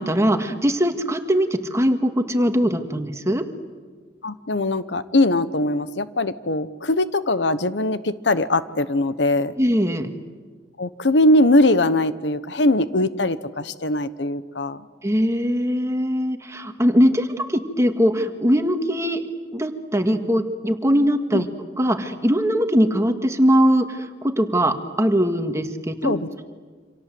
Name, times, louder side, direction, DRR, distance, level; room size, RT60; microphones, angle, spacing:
voice 1, 0.0-3.5 9.6-10.1 15.0-19.2 19.5-21.5 21.8-26.4, equal, 15° right, 7 dB, 1.8 m, -21 dB
voice 2, 4.2-9.5 10.8-14.9 21.3-21.5 26.0-26.4, left 1 dB, 75° left, 13 dB, 1.1 m, -21 dB
28.5 x 26.5 x 7.9 m, 1.5 s
head